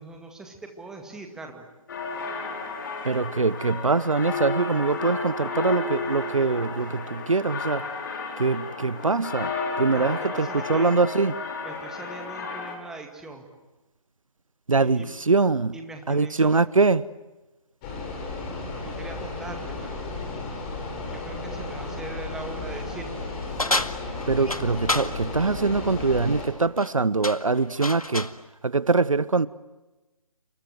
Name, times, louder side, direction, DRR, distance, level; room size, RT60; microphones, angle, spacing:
voice 1, 0.0-1.7 9.9-10.9 11.6-13.5 14.8-15.1 15.7-16.6 18.8-20.1 21.1-23.3, right 3 dB, 5° right, 2.1 m, -41 dB
sound 1, 1.9-12.8, left 3 dB, 35° left, 5.3 m, -32 dB
voice 2, 3.0-7.9 8.4-11.3 14.7-15.7 16.1-17.0 24.3-28.3 28.6-29.5, right 4 dB, 70° right, 1.0 m, -23 dB
sound 2, 17.8-26.5, left 3 dB, 20° left, 5.9 m, -34 dB
sound 3, 23.6-25.1 26.6-26.9 27.2-28.4, left 2 dB, 85° left, 2.0 m, -28 dB
29.0 x 26.0 x 7.9 m
figure-of-eight pair, 150°, 18 cm